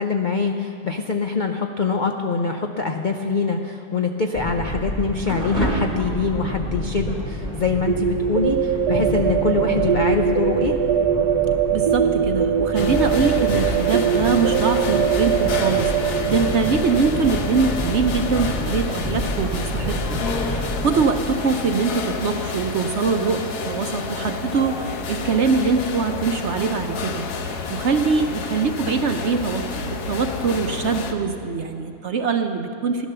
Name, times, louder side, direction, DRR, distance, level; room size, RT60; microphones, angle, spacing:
voice 1, 0.0-10.7, left 4 dB, 60° left, 4 dB, 0.5 m, -24 dB
sound 1, 4.3-21.1, equal, 25° left, 2.7 m, -29 dB
sound 2, 7.9-19.6, right 8 dB, 80° right, 1.3 m, -22 dB
voice 2, 11.7-33.1, right 5 dB, 55° right, 6 dB, 0.8 m, -23 dB
sound 3, 12.8-31.1, left 4 dB, 75° left, 1.5 m, -30 dB
16.0 x 10.5 x 6.8 m, 2.6 s
omnidirectional pair, 1.7 m